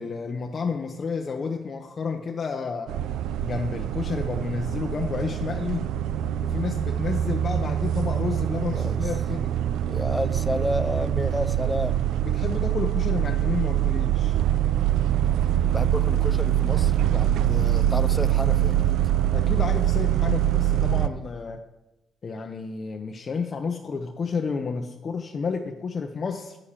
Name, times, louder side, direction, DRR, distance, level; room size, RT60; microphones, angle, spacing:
voice 1, 0.0-3.0 3.4-6.0 6.4-9.6 12.2-14.4 19.3-21.6 22.2-26.6, left 5 dB, 45° left, 3 dB, 0.7 m, -31 dB
sound 1, 2.9-21.1, right 12 dB, 80° right, 0.3 m, -24 dB
voice 2, 8.7-9.1 9.8-12.1 15.7-19.0, left 1 dB, 10° left, 10 dB, 0.4 m, -31 dB
8.6 x 6.6 x 7.2 m, 0.98 s
cardioid pair, 90°, 0 cm